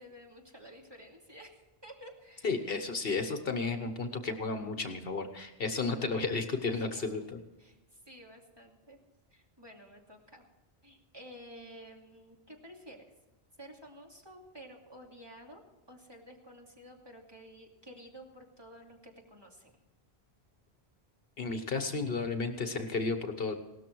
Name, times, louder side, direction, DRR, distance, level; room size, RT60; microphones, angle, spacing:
voice 1, 0.0-2.6 6.7-7.2 7.6-9.0 9.3-10.5 10.8-13.1 13.6-15.6 15.9-19.7, equal, 25° right, -1 dB, 2.6 m, -52 dB
voice 2, 2.4-7.2 21.4-23.5, left 3 dB, 60° left, 7 dB, 1.3 m, -33 dB
17.5 x 13.0 x 4.6 m, 1.0 s
omnidirectional pair, 1.1 m